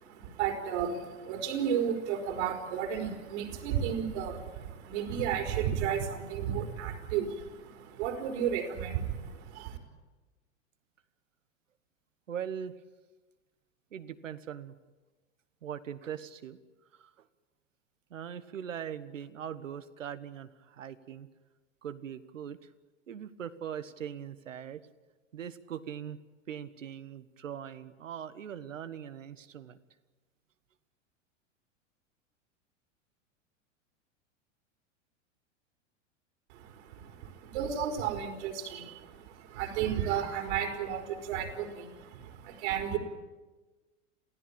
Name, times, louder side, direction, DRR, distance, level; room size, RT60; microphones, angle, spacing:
voice 1, 0.0-9.8 36.5-43.0, right 8 dB, 60° right, 4 dB, 4.5 m, -33 dB
voice 2, 12.3-12.8 13.9-14.7 15.6-16.6 16.9-17.2 18.1-21.3 21.8-22.6 23.1-24.8 25.3-26.2 26.5-29.8, right 8 dB, 80° right, 12 dB, 1.4 m, -41 dB
27.5 x 16.0 x 8.8 m, 1.2 s
hypercardioid pair, 95°, 38 cm